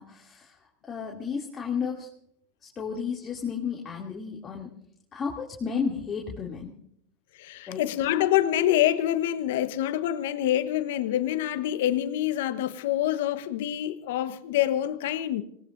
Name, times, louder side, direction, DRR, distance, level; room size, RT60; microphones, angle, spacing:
voice 1, 0.0-2.1 2.6-4.7 5.1-6.7 7.7-7.8, left 6 dB, 25° left, 2.7 m, -33 dB
voice 2, 7.4-15.4, left 12 dB, 70° left, 1.1 m, -26 dB
26.5 x 19.5 x 2.6 m
hypercardioid pair, 90°, 0 cm